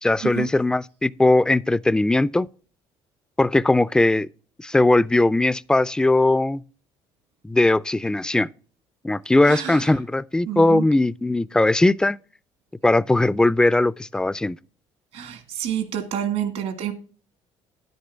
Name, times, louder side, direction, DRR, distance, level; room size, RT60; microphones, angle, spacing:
voice 1, 0.0-2.5 3.4-4.3 4.6-6.6 7.4-8.5 9.0-12.2 12.8-14.6, left 2 dB, 5° left, 0.3 m, -19 dB
voice 2, 9.4-9.9 10.5-10.9 15.1-16.9, right 10 dB, 75° right, 1.8 m, -28 dB
10.0 x 8.0 x 3.4 m
cardioid pair, 105°, 11 cm